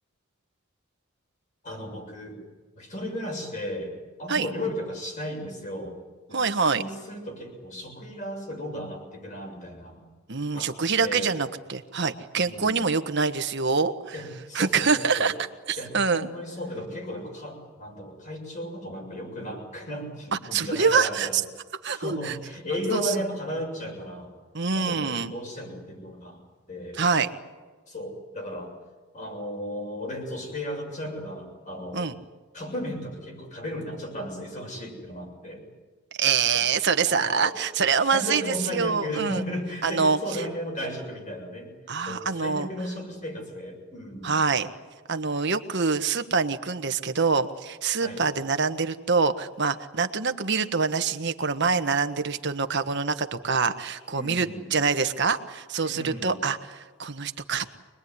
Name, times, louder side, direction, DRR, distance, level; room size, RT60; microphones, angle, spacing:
voice 1, 1.6-2.4 2.8-3.9 4.2-6.0 6.3-10.0 10.5-10.7 11.0-11.3 12.4-12.8 14.1-15.3 15.8-21.4 21.8-24.3 24.7-26.4 26.7-27.0 27.9-28.7 29.1-32.1 32.5-35.6 37.0-37.2 37.4-37.5 38.0-41.7 42.0-44.4 48.0-48.2 54.1-54.7 55.8-56.4, equal, 35° left, 2 dB, 7.0 m, -35 dB
voice 2, 6.3-6.8 10.3-14.1 14.5-15.3 15.7-16.3 20.3-21.4 21.8-22.3 22.9-23.1 24.5-25.3 27.0-27.3 31.9-32.1 36.2-39.4 39.8-40.2 41.9-42.7 44.2-44.7 45.1-57.7, right 5 dB, 55° right, 8 dB, 1.4 m, -25 dB
25.5 x 21.0 x 9.7 m, 1.4 s
head